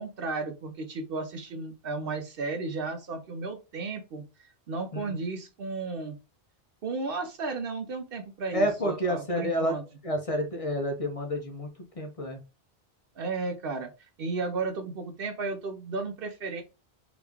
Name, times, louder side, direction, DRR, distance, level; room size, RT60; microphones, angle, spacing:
voice 1, 0.0-4.2 4.7-6.2 6.8-9.8 13.2-13.9 14.2-16.6, right 3 dB, 60° right, 5 dB, 0.8 m, -34 dB
voice 2, 4.9-5.2 8.5-9.8 10.0-11.7 12.0-12.4, equal, 40° left, 3 dB, 0.5 m, -29 dB
2.9 x 2.5 x 3.4 m, 0.29 s
omnidirectional pair, 1.1 m